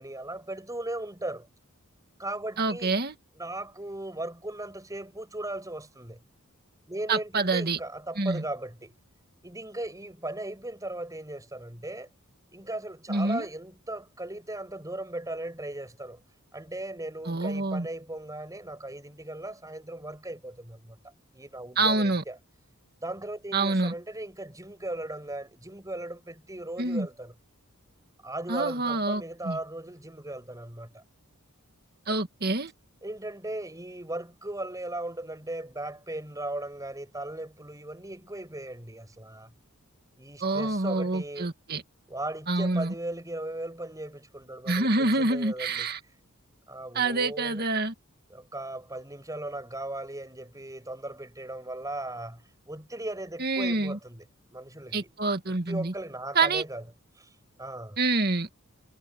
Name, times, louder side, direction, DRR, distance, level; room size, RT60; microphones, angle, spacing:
voice 1, 0.0-1.5 2.2-2.9 3.4-6.2 6.9-9.0 9.4-12.1 12.5-16.2 16.5-21.0 21.3-22.4 23.0-27.3 28.2-31.0 33.0-39.5 40.2-41.5 42.1-45.9 46.7-47.6 48.3-54.2 54.5-55.1 55.7-56.8 57.2-57.3 57.6-58.0, right 1 dB, 15° right, 7.3 m, -37 dB
voice 2, 2.6-3.2 7.1-7.8 8.2-8.4 13.1-13.5 17.3-17.9 21.8-22.2 23.5-23.9 26.8-27.1 28.5-29.6 32.1-32.7 40.4-41.8 42.5-42.9 44.7-46.0 46.9-47.9 53.4-54.0 54.9-55.9 56.3-56.6 58.0-58.5, right 3 dB, 45° right, 2.0 m, -27 dB
head